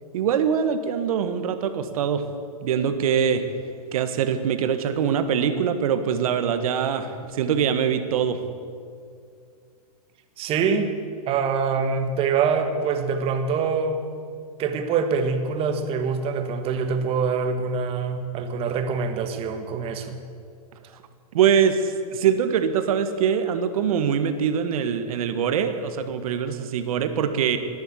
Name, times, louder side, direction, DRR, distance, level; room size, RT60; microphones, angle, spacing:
voice 1, 0.1-2.2 2.6-3.4 3.9-8.4 21.3-27.6, right 7 dB, 65° right, 9 dB, 1.5 m, -23 dB
voice 2, 10.4-10.9 11.3-14.1 14.6-20.2, right 5 dB, 30° right, 7 dB, 1.4 m, -25 dB
13.5 x 10.5 x 8.5 m, 2.2 s
hypercardioid pair, 135°, 20 cm